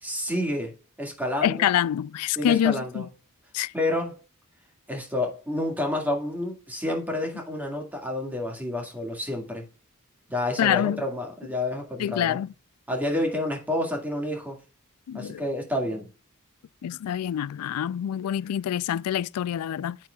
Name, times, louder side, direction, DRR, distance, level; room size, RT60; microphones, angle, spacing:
voice 1, 0.0-1.7 2.4-3.1 3.7-4.2 4.9-9.6 10.3-12.4 12.9-14.6 15.1-16.1, left 1 dB, 10° right, 1.9 m, -29 dB
voice 2, 1.4-3.1 3.5-3.7 10.6-11.0 12.0-12.5 15.1-15.4 16.8-20.0, left 10 dB, 75° left, 0.3 m, -26 dB
8.8 x 8.6 x 2.3 m
head